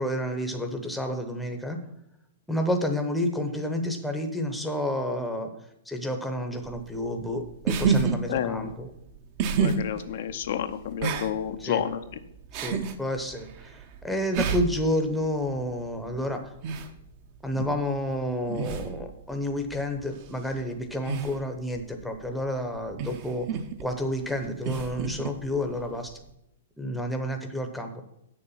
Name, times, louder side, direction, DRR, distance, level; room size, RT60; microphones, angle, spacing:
voice 1, 0.0-1.8 2.5-5.5 5.9-8.9 11.6-11.8 12.5-16.5 17.4-23.5 23.8-26.2 26.8-28.0, equal, ahead, 3 dB, 0.8 m, -30 dB
sound 1, 6.6-26.3, right 5 dB, 35° right, 0.8 m, -32 dB
voice 2, 8.3-8.7 9.6-12.0 17.6-17.7, left 9 dB, 55° left, 8 dB, 0.7 m, -30 dB
7.9 x 6.9 x 5.6 m, 0.81 s
hypercardioid pair, 160°, 0 cm